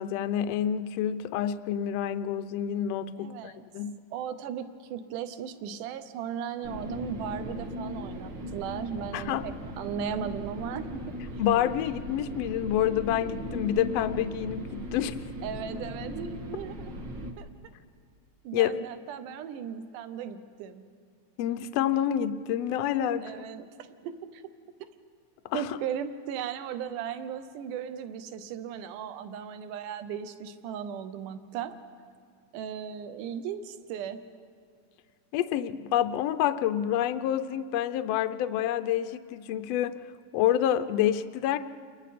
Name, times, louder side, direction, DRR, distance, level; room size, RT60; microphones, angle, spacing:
voice 1, 0.0-4.0 9.1-9.4 11.4-15.2 18.5-18.7 21.4-23.3 25.5-25.8 35.3-40.0 40.3-41.6, left 11 dB, 90° left, 10 dB, 1.4 m, -28 dB
voice 2, 3.2-3.7 4.1-11.0 11.3-11.4 15.4-16.9 17.4-17.5 18.4-20.8 23.2-24.4 24.8-24.9 25.5-31.8 32.5-34.2, right 8 dB, 80° right, 10 dB, 2.4 m, -37 dB
sound 1, 6.6-17.3, equal, 50° right, 1.4 m, -38 dB
29.0 x 22.0 x 4.2 m, 2.1 s
omnidirectional pair, 3.7 m